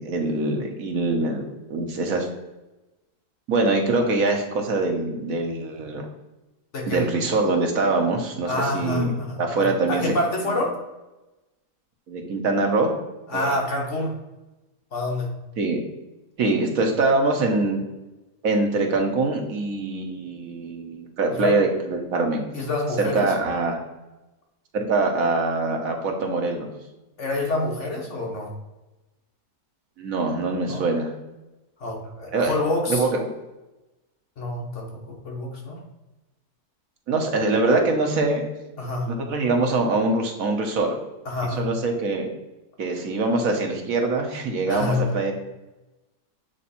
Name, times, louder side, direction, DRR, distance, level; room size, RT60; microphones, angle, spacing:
voice 1, 0.0-2.3 3.5-6.0 6.9-9.1 9.4-10.0 10.5-10.6 12.1-12.9 13.3-13.5 15.6-15.8 16.4-17.8 18.4-22.5 23.0-23.8 24.7-26.7 30.0-31.1 32.3-32.6 32.9-33.3 37.1-38.4 39.1-41.0 41.6-42.3 42.8-45.3, right 3 dB, 65° right, 3 dB, 1.4 m, -23 dB
voice 2, 8.5-10.8 13.3-14.2 14.9-15.3 21.3-21.5 22.5-23.3 27.2-28.5 30.7-30.8 31.8-33.1 34.4-35.8 38.8-39.1 41.2-41.7 44.7-45.2, left 2 dB, 50° left, -1 dB, 1.5 m, -27 dB
7.6 x 3.3 x 4.2 m, 1.0 s
omnidirectional pair, 1.6 m